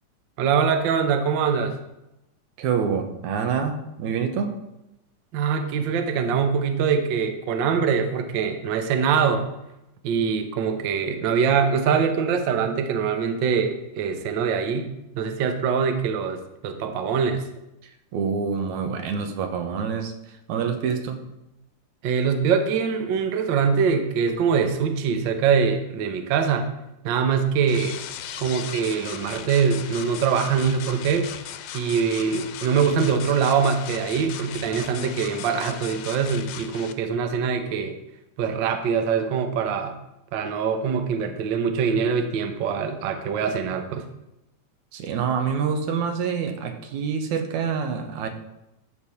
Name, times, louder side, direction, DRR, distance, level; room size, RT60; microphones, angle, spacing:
voice 1, 0.4-1.7 5.3-9.5 10.0-17.4 22.0-26.7 27.0-28.0 28.4-31.3 31.7-38.0 38.4-40.0 40.3-44.1, right 6 dB, 90° right, 7 dB, 1.0 m, -23 dB
voice 2, 2.6-4.6 18.1-20.1 20.5-21.2 44.9-48.3, right 6 dB, 70° right, 6 dB, 2.4 m, -26 dB
sound 1, 27.7-36.9, left 10 dB, 80° left, 2.1 m, -37 dB
12.5 x 4.8 x 7.1 m, 0.90 s
omnidirectional pair, 3.6 m